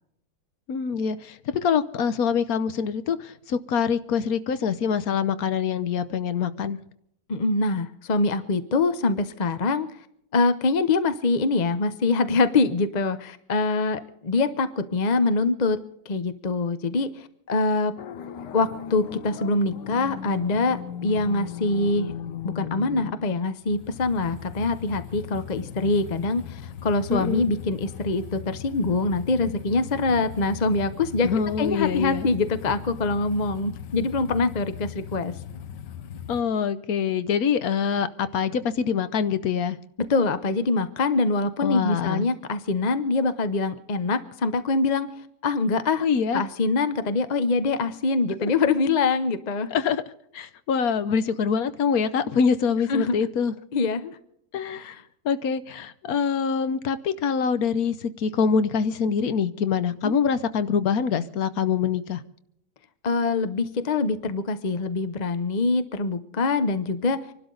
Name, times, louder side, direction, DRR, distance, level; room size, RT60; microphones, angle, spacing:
voice 1, 0.7-6.8 27.1-27.5 31.2-32.3 36.3-39.8 41.6-42.3 46.0-46.4 48.4-48.5 49.7-50.0 50.3-53.5 54.5-55.0 55.2-62.2, left 6 dB, 60° left, 1.2 m, -25 dB
voice 2, 7.3-9.9 10.3-15.8 16.0-17.9 18.5-22.1 22.5-31.3 31.6-35.4 40.1-45.1 45.4-46.1 46.3-49.7 52.9-53.1 53.7-54.2 54.7-55.0 60.0-60.1 63.0-67.2, left 3 dB, 45° left, 0.5 m, -24 dB
sound 1, 18.0-36.4, left 8 dB, 85° left, 1.5 m, -38 dB
25.5 x 12.0 x 3.9 m
omnidirectional pair, 1.9 m